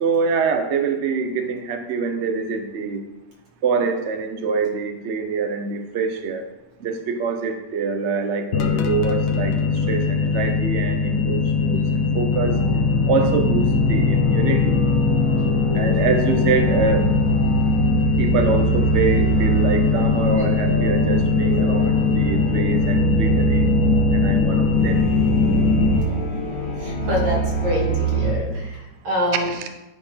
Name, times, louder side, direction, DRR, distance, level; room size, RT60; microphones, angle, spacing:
voice 1, 0.0-3.0 3.6-6.5 6.8-9.5 9.9-11.8 12.1-12.6 13.1-14.7 15.7-17.1 18.2-23.7 24.1-25.0 28.4-28.5 29.5-29.7, right 5 dB, 55° right, 6 dB, 0.8 m, -25 dB
sound 1, 8.5-26.0, left 5 dB, 60° left, 1.0 m, -21 dB
sound 2, 12.3-28.3, right 2 dB, 15° left, 1.3 m, -24 dB
voice 2, 26.8-29.5, left 1 dB, 75° right, -4 dB, 3.1 m, -26 dB
11.0 x 4.3 x 5.6 m, 0.98 s
omnidirectional pair, 2.0 m